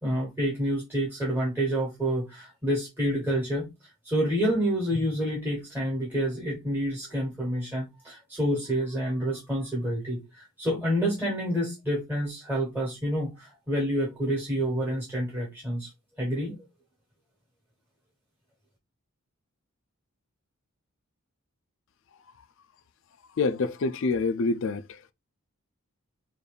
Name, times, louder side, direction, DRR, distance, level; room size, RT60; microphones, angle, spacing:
voice 1, 0.0-3.7 4.0-15.9 16.2-16.5, equal, 10° right, 1.2 m, -28 dB
voice 2, 23.4-24.8, left 3 dB, 60° left, 0.4 m, -26 dB
5.1 x 2.6 x 2.3 m
head